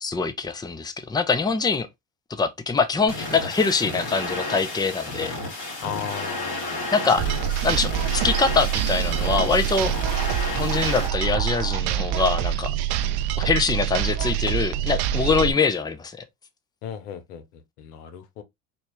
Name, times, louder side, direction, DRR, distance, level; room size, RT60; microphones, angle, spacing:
voice 1, 0.0-1.9 2.3-5.4 6.9-7.2 7.6-9.9 10.5-12.7 13.4-16.2, left 4 dB, 10° left, 0.6 m, -24 dB
sound 1, 3.1-11.1, left 2 dB, 50° left, 2.7 m, -32 dB
voice 2, 5.8-7.4 16.8-18.4, left 8 dB, 85° left, 0.8 m, -36 dB
sound 2, 7.2-15.5, right 11 dB, 60° right, 0.5 m, -25 dB
4.1 x 2.4 x 3.0 m
hypercardioid pair, 70°, 45 cm